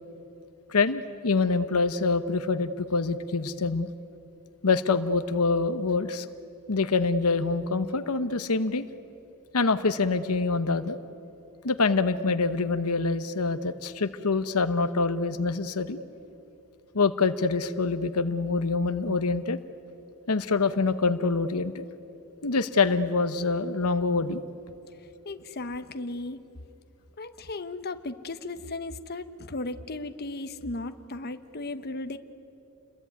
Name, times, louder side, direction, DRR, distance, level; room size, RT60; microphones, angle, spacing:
voice 1, 0.7-3.9 4.6-6.3 6.7-8.9 9.5-11.0 11.6-16.0 16.9-19.6 20.3-21.8 22.4-24.4, left 4 dB, 80° left, 11 dB, 1.0 m, -25 dB
voice 2, 25.2-26.4 27.2-32.2, left 2 dB, 45° left, 9 dB, 1.0 m, -36 dB
29.0 x 21.5 x 9.4 m, 3.0 s
head